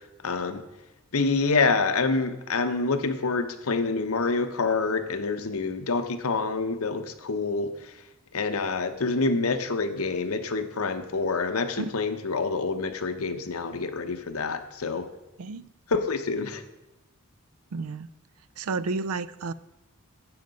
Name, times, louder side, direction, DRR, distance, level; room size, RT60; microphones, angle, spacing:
voice 1, 0.2-0.6 1.1-7.9 8.3-15.1 15.9-16.6, left 4 dB, 75° left, 8 dB, 0.9 m, -27 dB
voice 2, 17.7-18.1 18.6-19.5, right 3 dB, 85° right, 17 dB, 0.5 m, -31 dB
12.0 x 7.9 x 5.3 m, 0.98 s
head